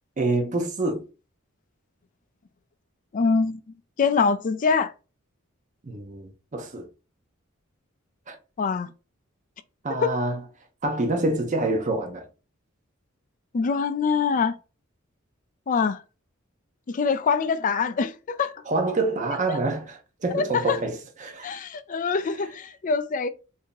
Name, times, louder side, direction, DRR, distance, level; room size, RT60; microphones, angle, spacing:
voice 1, 0.2-1.0 5.8-6.9 8.3-8.4 9.8-10.4 10.8-12.3 18.7-21.5, right 2 dB, 35° right, 0.7 m, -27 dB
voice 2, 3.1-3.6 4.0-4.9 8.6-8.9 10.0-10.1 13.5-14.6 15.7-16.0 16.9-18.6 19.5-19.6 20.3-20.8 21.4-23.3, left 5 dB, 40° left, 0.4 m, -24 dB
2.8 x 2.7 x 3.7 m
head